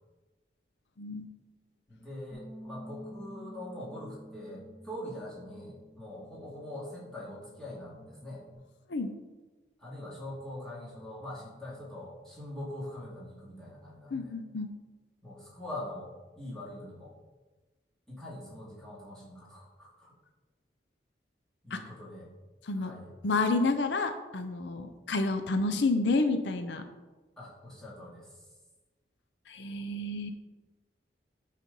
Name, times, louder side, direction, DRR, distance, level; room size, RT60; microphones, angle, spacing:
voice 1, 2.0-8.4 9.8-14.4 15.2-17.1 18.1-20.1 21.6-22.3 22.7-23.2 27.4-28.5, left 1 dB, 5° left, -7 dB, 2.3 m, -43 dB
Bass guitar, 2.3-8.6, equal, 30° right, 2.2 m, -51 dB
voice 2, 14.1-14.7 21.7-21.8 22.7-22.9 23.2-26.8 29.5-30.3, left 3 dB, 80° left, 8 dB, 0.6 m, -29 dB
9.0 x 4.2 x 5.3 m, 1.2 s
head